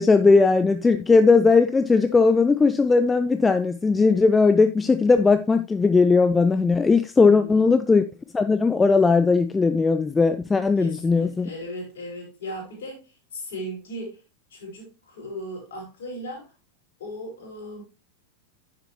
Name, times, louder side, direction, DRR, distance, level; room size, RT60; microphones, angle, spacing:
voice 1, 0.0-8.0 8.3-11.5, left 4 dB, 15° left, 0.5 m, -18 dB
voice 2, 7.2-7.7 10.8-14.2 14.5-16.5 17.0-17.8, equal, 60° left, 4.5 m, -37 dB
9.6 x 6.9 x 3.0 m
figure-of-eight pair, 90°, 0 cm